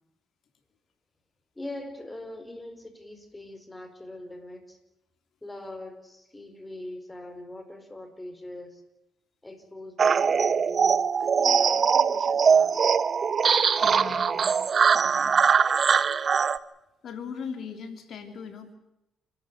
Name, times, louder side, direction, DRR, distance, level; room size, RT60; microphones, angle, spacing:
voice 1, 1.5-4.8 5.4-8.8 9.4-12.8, left 1 dB, 15° left, 8 dB, 4.7 m, -42 dB
sound 1, 10.0-16.6, right 6 dB, 45° right, 1.0 m, -22 dB
voice 2, 13.8-14.5 14.9-15.4 17.0-18.8, left 5 dB, 65° left, 7 dB, 3.1 m, -39 dB
29.5 x 13.5 x 8.1 m, 0.92 s
cardioid pair, 90°, 0 cm